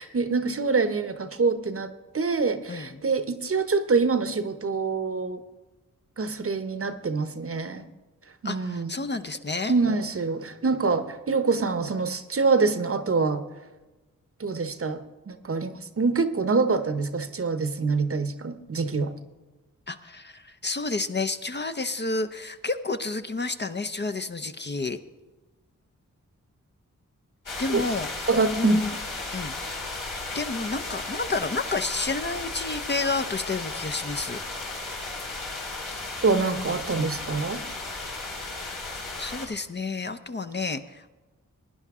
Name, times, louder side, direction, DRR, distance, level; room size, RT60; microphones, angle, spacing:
voice 1, 0.0-5.4 6.2-7.9 8.4-8.9 9.7-13.4 14.4-19.1 27.7-27.8 28.3-28.8 36.2-37.6, right 4 dB, 45° right, 10 dB, 0.9 m, -25 dB
voice 2, 2.7-3.0 8.4-9.7 19.9-25.0 27.6-28.1 28.5-28.9 29.3-29.6 30.3-34.4 39.2-41.1, left 3 dB, 35° left, 8 dB, 0.7 m, -30 dB
sound 1, 27.5-39.5, left 2 dB, 75° left, 2.2 m, -35 dB
17.5 x 9.9 x 3.6 m, 1.1 s
cardioid pair, 45°, 33 cm